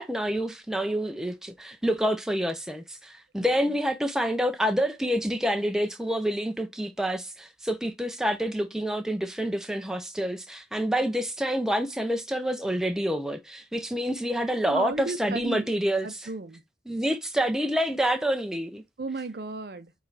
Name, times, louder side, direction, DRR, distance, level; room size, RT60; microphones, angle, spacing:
voice 1, 0.0-16.1 16.9-18.8, equal, 5° right, 0.4 m, -27 dB
voice 2, 3.4-3.8 14.6-15.7 16.0-16.6 19.0-19.9, right 3 dB, 60° right, 0.5 m, -35 dB
4.7 x 3.2 x 2.6 m
head